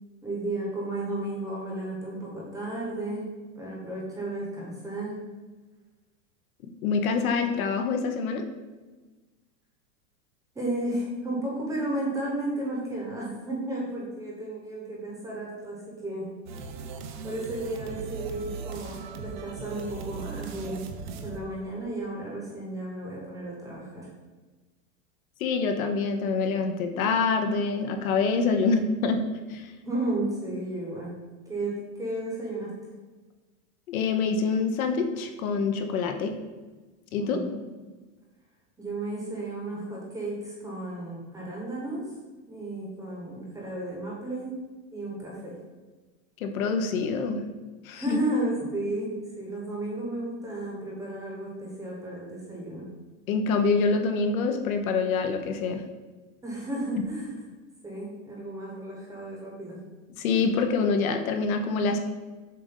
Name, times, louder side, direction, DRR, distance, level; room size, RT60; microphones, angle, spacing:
voice 1, 0.2-3.3 3.6-5.2 10.5-16.3 17.2-20.9 21.2-24.1 29.8-31.2 31.5-32.7 37.1-37.6 38.8-42.1 42.5-44.5 44.9-45.6 47.9-52.9 56.4-57.5 57.8-59.8, right 1 dB, 10° right, -4 dB, 0.9 m, -33 dB
voice 2, 6.8-8.5 25.4-29.2 29.5-29.7 33.9-36.3 37.1-37.4 46.4-47.4 47.8-48.2 53.3-55.8 60.2-62.0, left 4 dB, 75° left, 5 dB, 0.9 m, -26 dB
sound 1, 16.5-22.2, right 5 dB, 35° right, 0.4 m, -39 dB
7.0 x 2.5 x 5.4 m, 1.3 s
supercardioid pair, 165°, 43 cm